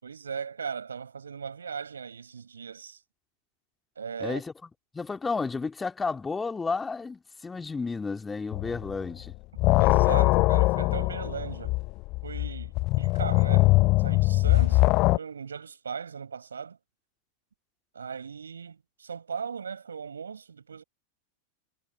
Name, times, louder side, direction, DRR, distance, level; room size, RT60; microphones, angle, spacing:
voice 1, 0.0-3.0 4.0-4.4 9.5-11.8 12.2-13.7 14.0-16.8 17.9-20.8, right 6 dB, 70° right, 6.1 m, -38 dB
voice 2, 4.2-4.5 4.9-9.3, left 4 dB, 15° left, 2.7 m, -32 dB
sound 1, 8.5-9.0 9.3-15.2, left 22 dB, 40° left, 0.6 m, -22 dB
figure-of-eight pair, 90°, 0 cm